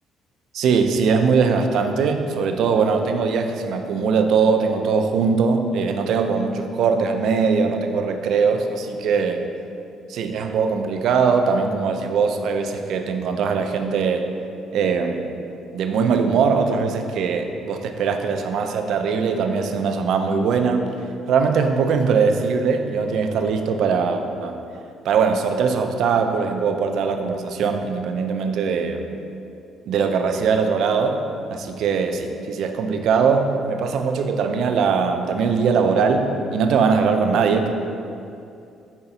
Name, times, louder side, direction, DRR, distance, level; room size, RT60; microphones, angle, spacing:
voice 1, 0.5-9.4 10.1-14.3 14.7-15.3 15.7-20.8 21.3-24.6 25.0-29.0 29.9-31.2 31.5-37.7, right 5 dB, 60° right, 6 dB, 0.5 m, -21 dB
5.7 x 3.8 x 5.8 m, 2.6 s
cardioid pair, 165°, 0 cm